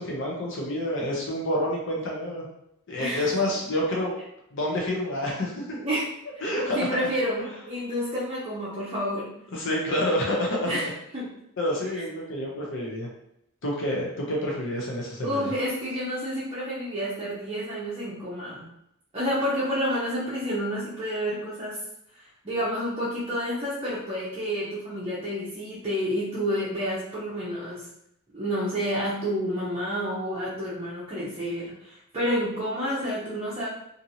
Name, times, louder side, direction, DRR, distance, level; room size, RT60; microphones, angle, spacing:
voice 1, 0.0-2.4 2.9-4.1 4.5-5.8 6.4-7.5 9.5-10.8 11.6-13.1 13.6-15.5, left 1 dB, 60° left, -3 dB, 0.6 m, -28 dB
voice 2, 3.0-3.3 5.8-6.1 6.7-9.3 10.7-10.9 11.1-11.3 11.9-12.0 15.2-18.7 19.1-21.8 22.4-27.9 28.3-33.7, equal, 30° right, -9 dB, 0.7 m, -29 dB
2.7 x 2.6 x 2.7 m, 0.78 s
head